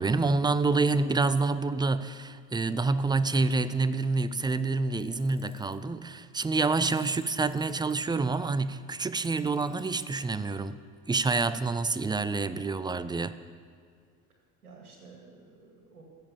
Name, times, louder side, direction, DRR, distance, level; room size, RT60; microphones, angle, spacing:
voice 1, 0.0-10.8 11.1-13.4, right 3 dB, 10° right, 14 dB, 0.4 m, -27 dB
Tools, 5.0-5.8 6.8-7.9 9.2-10.2, left 9 dB, 50° left, 1.9 m, -56 dB
voice 2, 14.6-16.0, right 3 dB, 90° right, 1 dB, 2.4 m, -51 dB
15.5 x 7.2 x 7.2 m, 2.2 s
hypercardioid pair, 65°, 44 cm